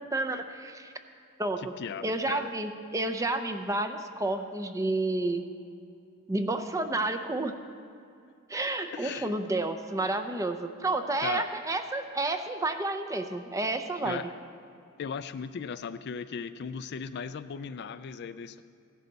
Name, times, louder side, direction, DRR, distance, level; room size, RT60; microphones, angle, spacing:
voice 1, 0.1-0.9 1.4-1.7 2.0-5.4 6.3-7.6 8.5-14.2, right 2 dB, 15° right, 8 dB, 0.6 m, -30 dB
voice 2, 1.6-2.5 8.9-9.3 11.2-11.5 14.0-14.3 15.0-18.6, left 6 dB, 55° left, 12 dB, 0.4 m, -37 dB
15.5 x 11.0 x 4.0 m, 2.5 s
head